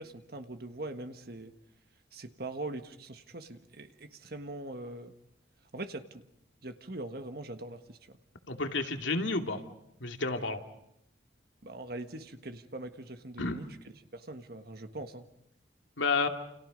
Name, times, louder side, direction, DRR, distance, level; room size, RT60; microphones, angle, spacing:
voice 1, 0.0-1.5 2.1-5.1 5.7-6.2 6.6-8.2 11.6-15.3, right 2 dB, 50° right, 7 dB, 1.6 m, -42 dB
voice 2, 8.5-9.6 10.0-10.6 13.4-13.6 16.0-16.3, left 3 dB, 80° left, 5 dB, 2.6 m, -30 dB
29.5 x 29.0 x 5.3 m, 0.79 s
head